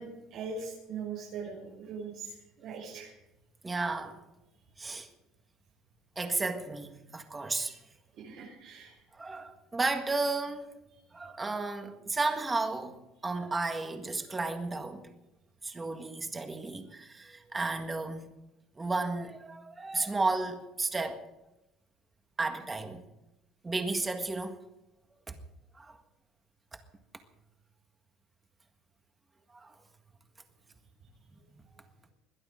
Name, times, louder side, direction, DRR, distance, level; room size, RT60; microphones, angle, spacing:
voice 1, 0.0-3.1 8.2-9.0, right 5 dB, 55° right, 6.4 m, -41 dB
voice 2, 3.6-4.2 4.8-5.1 6.2-7.8 9.1-10.8 11.1-13.0 13.2-15.0 15.6-18.3 18.8-21.2 22.4-23.1 23.6-24.6 25.3-25.4 25.7-26.0 29.5-29.7, right 3 dB, 15° right, 1.7 m, -33 dB
22.0 x 15.5 x 3.8 m
cardioid pair, 170°, 0 cm